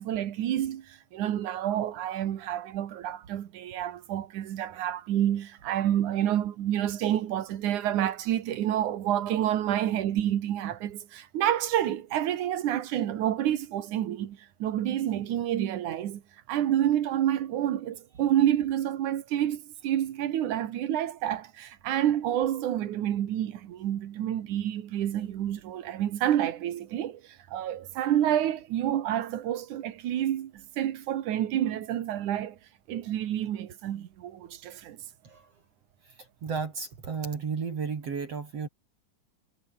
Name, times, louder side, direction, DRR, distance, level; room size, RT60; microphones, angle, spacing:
voice 1, 0.0-16.2 16.5-32.6 32.9-35.0, right 11 dB, 75° right, 2.9 m, -29 dB
voice 2, 36.4-38.7, right 5 dB, 50° right, 3.9 m, -33 dB
omnidirectional pair, 3.6 m